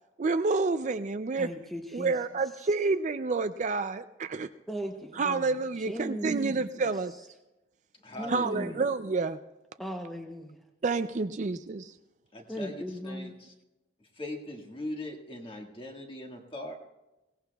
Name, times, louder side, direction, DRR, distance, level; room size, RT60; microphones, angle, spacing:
voice 1, 0.2-1.6 1.9-4.5 5.1-7.1 8.3-9.4 10.8-11.9, right 4 dB, 35° right, 9 dB, 0.4 m, -29 dB
voice 2, 1.4-2.1 4.7-5.5 5.9-6.6 8.2-8.8 9.8-10.6 12.5-13.3, equal, ahead, 1 dB, 0.8 m, -37 dB
voice 3, 8.0-8.8 12.3-13.5 14.1-16.7, left 1 dB, 25° left, 2 dB, 1.7 m, -40 dB
23.5 x 17.5 x 2.3 m, 1.0 s
head